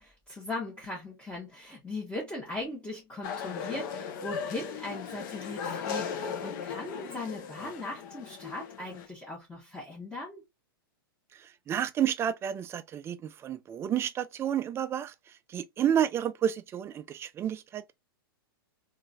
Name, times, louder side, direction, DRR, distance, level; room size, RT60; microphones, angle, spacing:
voice 1, 0.0-10.4, left 2 dB, 10° left, 1.3 m, -39 dB
sound 1, 3.2-9.1, left 6 dB, 55° left, 0.8 m, -37 dB
voice 2, 11.3-17.9, right 9 dB, 20° right, 0.4 m, -31 dB
3.6 x 2.6 x 2.3 m
hypercardioid pair, 115°, 12 cm